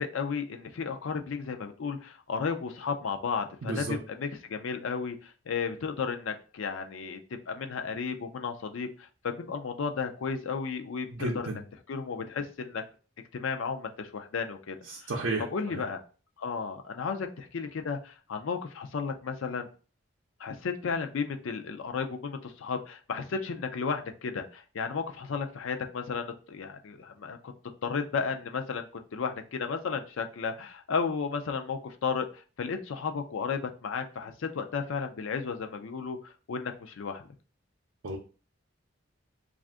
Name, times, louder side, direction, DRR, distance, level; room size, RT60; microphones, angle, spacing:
voice 1, 0.0-7.2 7.5-8.9 9.2-11.6 11.9-12.8 13.3-14.8 15.0-15.1 15.5-16.0 16.4-19.7 20.4-27.5 27.8-32.3 32.6-37.3, left 5 dB, 75° left, 6 dB, 0.4 m, -33 dB
voice 2, 3.6-4.0 11.1-11.6 14.9-15.4 38.0-38.2, right 2 dB, 65° right, -1 dB, 0.5 m, -32 dB
2.5 x 2.4 x 3.4 m, 0.36 s
head